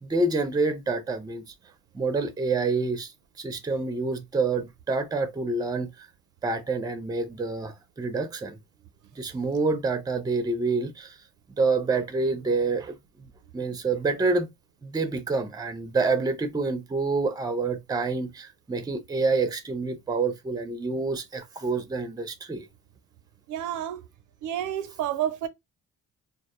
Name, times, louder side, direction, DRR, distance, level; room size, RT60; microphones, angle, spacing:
voice 1, 0.0-1.4 1.9-3.1 3.4-6.1 6.4-8.6 9.2-11.2 11.6-14.5 14.8-22.7, right 3 dB, 15° right, 0.4 m, -27 dB
voice 2, 23.5-24.0 24.4-25.5, right 11 dB, 80° right, 0.5 m, -30 dB
2.1 x 2.0 x 2.9 m
cardioid pair, 90°, 30 cm